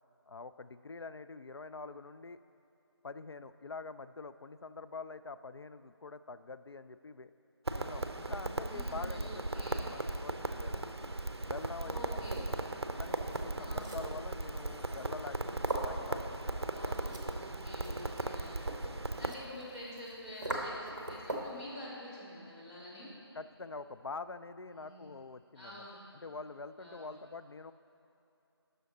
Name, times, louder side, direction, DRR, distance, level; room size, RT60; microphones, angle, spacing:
voice 1, 0.3-2.4 3.0-7.3 7.7-10.9 11.5-12.6 13.0-17.0 23.3-25.9 26.1-27.7, left 3 dB, 70° left, 12 dB, 0.4 m, -46 dB
Crackle, 7.7-19.3, right 2 dB, 70° right, 0.6 m, -37 dB
voice 2, 8.6-9.9 11.8-12.4 13.5-13.9 16.6-18.7 19.2-23.1 24.7-25.0 25.6-26.0 26.8-27.1, left 1 dB, 20° left, -11 dB, 2.2 m, -47 dB
sound 1, 11.6-21.6, right 1 dB, 45° right, 1.1 m, -44 dB
11.0 x 6.3 x 4.0 m, 2.8 s
figure-of-eight pair, 160°, 14 cm